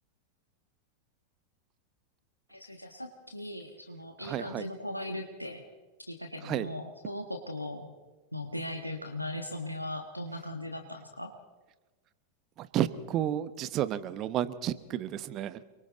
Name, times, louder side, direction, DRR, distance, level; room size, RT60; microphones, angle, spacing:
voice 1, 2.5-5.6 6.1-7.9 8.3-11.3, left 1 dB, 90° left, 3 dB, 1.6 m, -38 dB
voice 2, 4.2-4.6 6.4-6.7 12.6-15.6, right 11 dB, 35° right, 14 dB, 1.1 m, -31 dB
30.0 x 22.5 x 4.0 m, 1.2 s
figure-of-eight pair, 90°, 0 cm